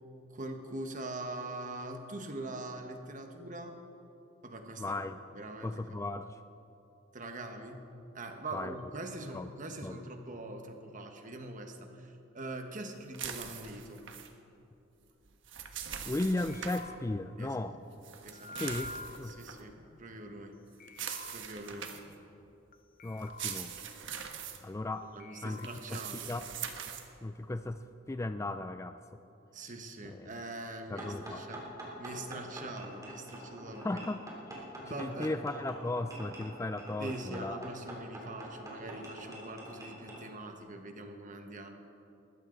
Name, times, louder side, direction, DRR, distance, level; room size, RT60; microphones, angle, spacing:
voice 1, 0.3-3.8 4.4-5.0 5.3-6.0 7.1-7.9 8.1-14.0 17.4-17.6 18.2-18.6 19.2-20.6 21.3-21.9 25.0-26.3 29.5-31.7 32.0-34.0 34.8-35.4 37.0-41.7, right 2 dB, 40° right, 5 dB, 1.4 m, -43 dB
voice 2, 4.8-5.2 5.6-6.4 8.5-8.7 9.3-9.5 9.8-10.0 16.1-17.8 18.6-19.3 23.0-23.7 24.6-25.1 25.4-26.0 26.3-26.4 27.2-27.8 28.1-29.0 30.0-30.3 30.9-31.4 33.8-34.5 34.8-37.7, left 2 dB, 15° left, 10 dB, 0.3 m, -36 dB
sound 1, 13.1-14.3 15.2-16.8 18.0-19.6 20.9-22.1 23.2-24.6 25.6-27.1, right 8 dB, 65° right, 1.3 m, -42 dB
sound 2, 16.5-20.5 20.8-22.7 23.0-24.9 25.2-25.8, left 2 dB, 45° left, 0.8 m, -49 dB
sound 3, 31.0-40.2, right 1 dB, 15° right, 3.4 m, -45 dB
20.5 x 15.0 x 4.0 m, 2.9 s
head